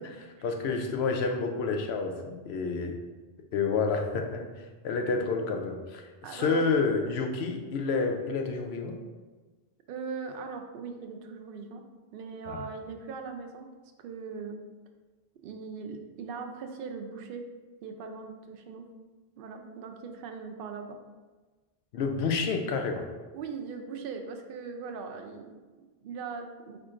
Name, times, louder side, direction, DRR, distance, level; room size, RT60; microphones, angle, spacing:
voice 1, 0.4-3.0 3.5-4.4 4.8-9.0 12.5-12.6 21.9-23.1, left 4 dB, 80° left, 3 dB, 0.9 m, -29 dB
voice 2, 6.2-6.6 9.9-11.8 12.1-13.7 14.0-14.6 15.4-17.5 17.8-18.9 19.4-21.0 23.3-25.6 26.0-26.8, right 5 dB, 65° right, 4 dB, 0.7 m, -40 dB
4.6 x 4.3 x 2.5 m, 1.3 s
omnidirectional pair, 1.1 m